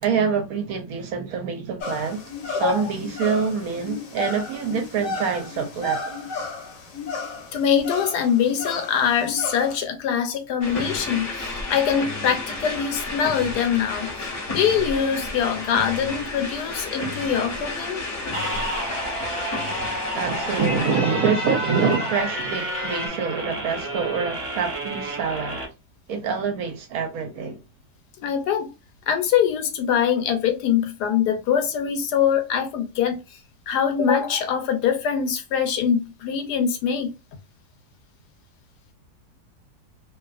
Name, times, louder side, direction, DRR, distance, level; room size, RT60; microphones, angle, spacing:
voice 1, 0.0-2.2 2.5-6.0 6.3-6.5 20.1-25.6 26.1-27.6, right 6 dB, 70° right, 0.9 m, -26 dB
sound 1, 1.8-9.8, left 3 dB, 60° left, 0.9 m, -33 dB
voice 2, 2.5-2.8 7.5-18.0 28.2-28.7 29.1-33.2 33.7-37.1, left 8 dB, 80° left, 1.1 m, -23 dB
sound 2, 10.6-23.1, left 2 dB, 35° left, 0.8 m, -31 dB
sound 3, 18.3-25.7, right 1 dB, 30° right, 0.6 m, -31 dB
2.6 x 2.4 x 2.4 m
omnidirectional pair, 1.8 m